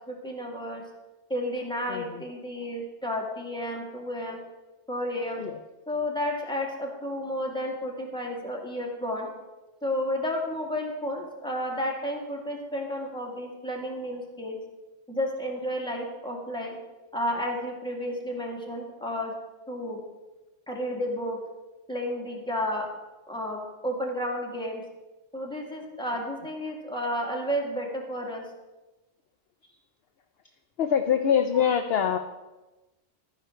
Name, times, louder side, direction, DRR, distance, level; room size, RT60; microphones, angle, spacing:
voice 1, 0.1-0.8 1.3-4.4 4.9-5.4 5.9-9.3 9.8-14.6 15.1-16.8 17.1-19.3 19.7-20.0 20.7-21.4 21.9-22.9 23.3-24.8 25.3-28.5 31.5-31.7, equal, 5° left, -1 dB, 2.0 m, -32 dB
voice 2, 30.8-32.2, left 8 dB, 60° left, 7 dB, 0.8 m, -24 dB
12.0 x 9.8 x 4.5 m, 1.1 s
omnidirectional pair, 1.3 m